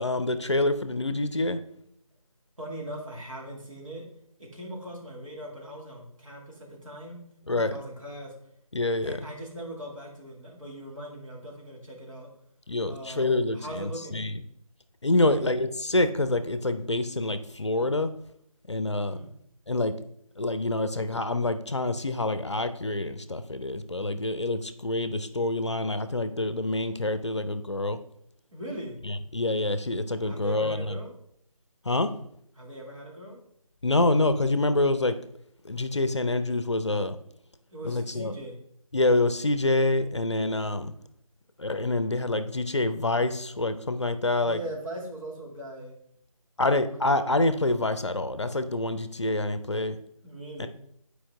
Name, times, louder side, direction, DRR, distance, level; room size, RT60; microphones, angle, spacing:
voice 1, 0.0-1.6 7.5-7.7 8.7-9.2 12.7-14.4 15.0-18.1 18.7-19.1 19.7-20.0 20.4-28.0 29.0-31.0 31.8-32.1 33.8-35.2 35.6-37.2 37.8-38.3 38.9-40.9 41.6-44.6 46.6-50.0 50.6-50.7, left 2 dB, 50° left, 11 dB, 0.6 m, -26 dB
voice 2, 2.6-4.1 4.4-7.2 7.6-8.3 9.0-12.3 12.8-14.2 15.1-15.6 19.0-19.3 28.5-29.0 30.3-31.1 32.6-33.4 37.7-38.6 44.4-46.0 50.2-50.7, right 1 dB, 60° right, -2 dB, 2.2 m, -40 dB
8.6 x 4.8 x 3.4 m, 0.70 s
figure-of-eight pair, 165°, 19 cm